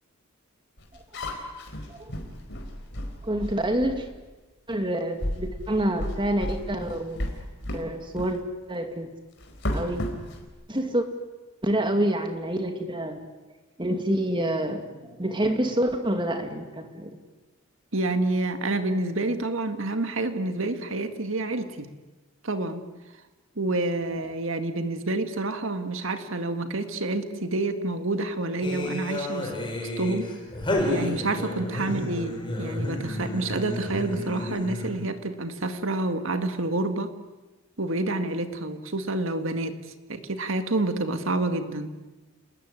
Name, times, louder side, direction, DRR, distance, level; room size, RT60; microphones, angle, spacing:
sound 1, 0.8-4.1 4.7-4.8 5.2-7.9 8.2-8.4 9.4-10.5, left 1 dB, 55° left, 4.5 m, -33 dB
voice 1, 3.2-4.1 4.7-7.2 7.7-8.4 8.7-9.1 9.7-10.0 10.7-11.0 11.6-13.3 13.8-17.1, right 1 dB, 25° right, 5 dB, 2.3 m, -27 dB
voice 2, 17.9-21.9 22.4-22.8 23.6-29.5 29.8-30.3 30.9-37.1 37.8-39.8 40.1-41.9, right 2 dB, 70° right, 8 dB, 2.0 m, -28 dB
sound 2, 28.6-35.1, left 1 dB, 25° left, 5.3 m, -31 dB
29.0 x 19.5 x 9.7 m, 1.2 s
head